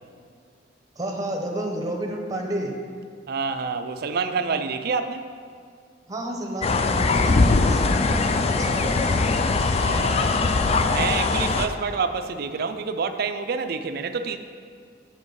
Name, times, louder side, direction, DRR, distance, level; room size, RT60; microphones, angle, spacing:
voice 1, 1.0-2.7 6.1-9.1, right 1 dB, 20° right, 1 dB, 0.8 m, -31 dB
voice 2, 3.3-5.3 9.8-10.6 10.9-14.4, right 5 dB, 55° right, 9 dB, 0.4 m, -28 dB
sound 1, 6.6-11.7, left 3 dB, 35° left, 0.3 m, -21 dB
7.6 x 6.3 x 4.7 m, 2.2 s
head